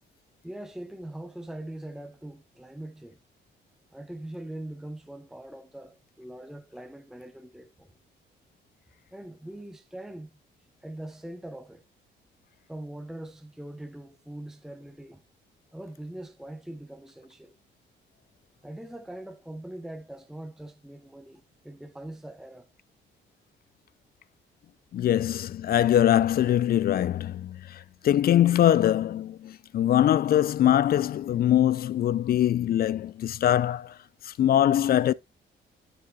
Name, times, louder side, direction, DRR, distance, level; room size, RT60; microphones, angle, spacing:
voice 1, 0.4-3.2 3.9-7.9 9.1-10.3 10.8-11.8 12.7-15.2 15.7-17.5 18.6-22.7, right 1 dB, ahead, 0.8 m, -42 dB
voice 2, 24.9-34.0 34.2-35.1, left 11 dB, 50° left, 0.4 m, -23 dB
9.3 x 6.9 x 2.3 m
cardioid pair, 90°, 20 cm